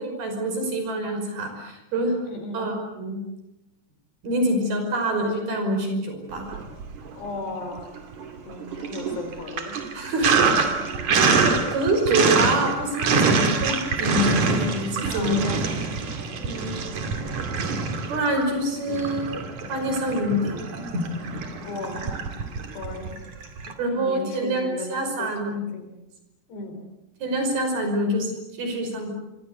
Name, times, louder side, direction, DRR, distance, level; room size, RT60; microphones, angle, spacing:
voice 1, 0.0-2.2 2.5-3.2 4.2-6.6 9.9-10.4 11.1-15.5 16.4-16.8 18.1-19.3 19.7-20.7 23.8-25.6 27.2-29.1, right 1 dB, 65° right, 4 dB, 7.4 m, -26 dB
voice 2, 2.2-2.7 7.2-7.8 8.5-9.8 15.1-15.8 21.6-22.2 22.7-23.1 23.9-25.9 26.5-26.8, left 2 dB, 90° left, 7 dB, 6.5 m, -36 dB
Sink (filling or washing), 6.4-7.3 7.6-23.7, right 4 dB, 50° right, 3.3 m, -25 dB
26.5 x 23.0 x 8.3 m, 0.98 s
omnidirectional pair, 4.7 m